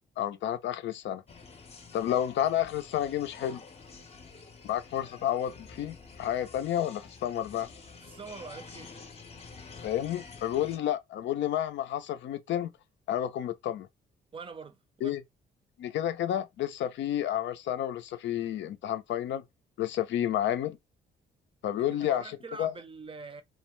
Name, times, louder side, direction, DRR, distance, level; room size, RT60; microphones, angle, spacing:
voice 1, 0.2-1.2 1.9-3.6 4.6-7.7 9.8-12.7 13.1-13.9 15.0-15.2 15.8-19.4 19.8-20.8 21.6-22.2 22.6-22.7, left 11 dB, 70° left, 0.5 m, -30 dB
sound 1, 1.3-10.8, left 4 dB, 30° left, 0.7 m, -49 dB
voice 2, 8.0-8.9 14.3-15.2 21.8-23.4, right 4 dB, 25° right, 0.5 m, -44 dB
2.3 x 2.2 x 3.0 m
cardioid pair, 90°, 20 cm